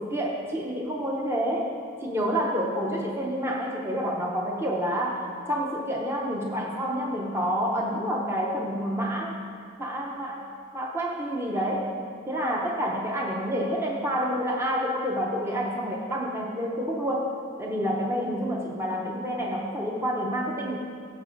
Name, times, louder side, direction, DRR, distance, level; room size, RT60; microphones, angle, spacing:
voice 1, 0.0-1.7 2.0-9.3 9.8-10.4 10.7-12.0 12.3-17.3 17.6-20.8, equal, 15° right, -1 dB, 0.8 m, -28 dB
16.0 x 7.5 x 3.9 m, 2.3 s
head